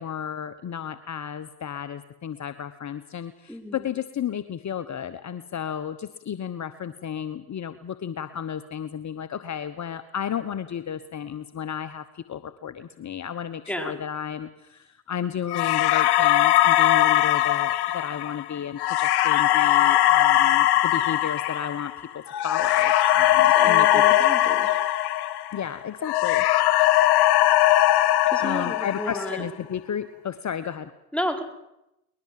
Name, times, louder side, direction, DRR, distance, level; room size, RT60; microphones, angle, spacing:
voice 1, 0.0-24.0 25.5-26.4 28.4-30.9, left 8 dB, 40° left, 13 dB, 1.2 m, -33 dB
voice 2, 3.5-3.9 13.7-13.9 23.6-24.7 28.3-29.5 31.1-31.4, equal, 5° left, 5 dB, 4.8 m, -32 dB
sound 1, 15.5-25.7 26.0-29.4, left 13 dB, 65° left, 1.9 m, -20 dB
23.0 x 20.5 x 7.8 m, 0.89 s
hypercardioid pair, 60°, 42 cm